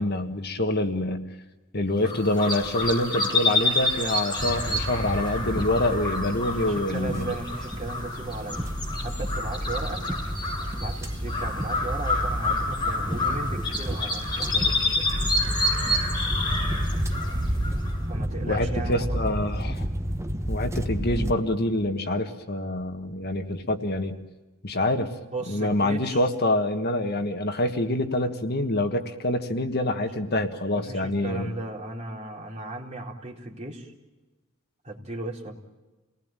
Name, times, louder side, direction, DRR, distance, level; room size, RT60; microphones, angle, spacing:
voice 1, 0.0-1.3 1.7-7.4 18.5-19.8 20.5-24.2 24.6-25.1 25.5-31.5, left 1 dB, 50° left, 6 dB, 1.5 m, -26 dB
sound 1, 2.0-18.1, left 2 dB, 20° left, 7.5 m, -29 dB
sound 2, 4.4-21.3, equal, 15° right, 1.1 m, -31 dB
voice 2, 6.5-8.7 9.0-10.1 10.8-15.1 18.1-19.3 25.3-26.2 30.1-30.2 30.7-33.9 34.8-35.6, right 2 dB, 35° right, -1 dB, 4.0 m, -36 dB
29.0 x 19.5 x 9.0 m, 1.1 s
head